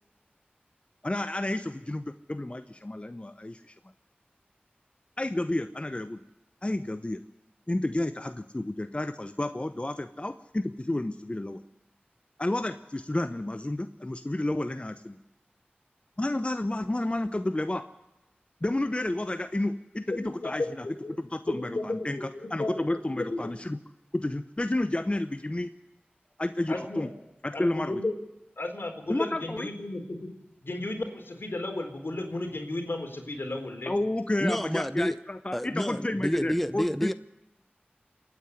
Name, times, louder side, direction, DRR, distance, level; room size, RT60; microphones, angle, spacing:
voice 1, 1.0-3.7 5.2-6.2 6.6-7.2 7.7-11.6 12.4-15.2 16.2-17.8 18.6-20.9 21.2-23.8 24.1-25.7 26.4-27.1 27.4-28.0 29.1-29.7 33.9-37.1, left 1 dB, 30° left, 0.9 m, -31 dB
voice 2, 20.1-20.7 21.0-21.2 21.4-22.7 23.2-23.5 26.7-27.1 27.5-28.1 28.6-30.3 30.6-33.9, left 2 dB, 75° left, 3.9 m, -33 dB
voice 3, 34.4-35.2 35.5-37.1, equal, 5° left, 0.7 m, -28 dB
27.5 x 9.6 x 9.9 m
wide cardioid pair, 40°, 4 cm